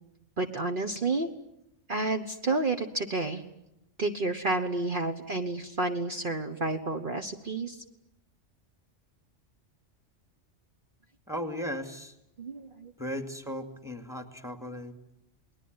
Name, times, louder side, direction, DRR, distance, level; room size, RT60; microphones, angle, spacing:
voice 1, 0.4-1.3 1.9-3.4 4.0-7.8 12.4-12.9, right 2 dB, 45° right, 5 dB, 1.5 m, -30 dB
voice 2, 11.3-12.1 13.0-14.9, equal, 5° right, 6 dB, 2.5 m, -36 dB
30.0 x 20.5 x 9.6 m, 0.88 s
omnidirectional pair, 1.2 m